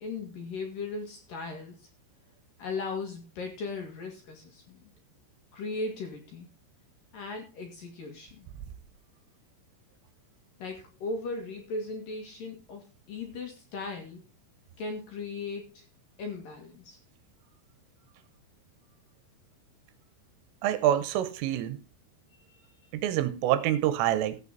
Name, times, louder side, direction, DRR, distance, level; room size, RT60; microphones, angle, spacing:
voice 1, 0.0-1.9 2.6-4.8 5.5-6.5 7.1-8.5 10.6-14.3 14.8-15.9 16.2-17.0 22.3-22.9, left 3 dB, 55° left, 2.8 m, -38 dB
voice 2, 20.6-21.8 22.9-24.4, right 12 dB, 85° right, 3.5 m, -26 dB
14.5 x 8.3 x 4.0 m
omnidirectional pair, 5.9 m